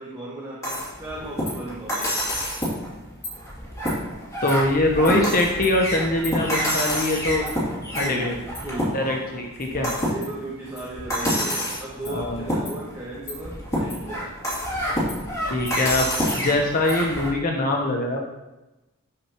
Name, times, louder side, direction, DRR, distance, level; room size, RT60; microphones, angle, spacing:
voice 1, 0.0-2.4 7.9-9.1 9.6-14.4, right 1 dB, 15° right, -8 dB, 1.7 m, -36 dB
sound 1, 0.6-17.3, equal, 15° left, 3.0 m, -28 dB
voice 2, 4.4-7.5 8.0-8.3 8.9-9.9 12.1-12.4 15.5-16.1 16.4-18.2, left 1 dB, 40° left, 0 dB, 1.0 m, -23 dB
11.0 x 6.9 x 3.1 m, 1.0 s
head